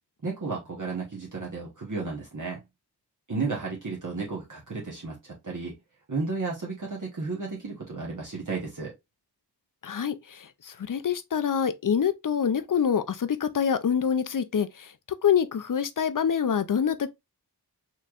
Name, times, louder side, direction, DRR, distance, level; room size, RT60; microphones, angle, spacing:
voice 1, 0.2-2.6 3.3-5.7 6.1-8.9, right 4 dB, 50° right, 1.1 m, -33 dB
voice 2, 9.8-17.1, left 7 dB, 55° left, 0.5 m, -26 dB
4.3 x 3.0 x 2.4 m
wide cardioid pair, 55°, 40 cm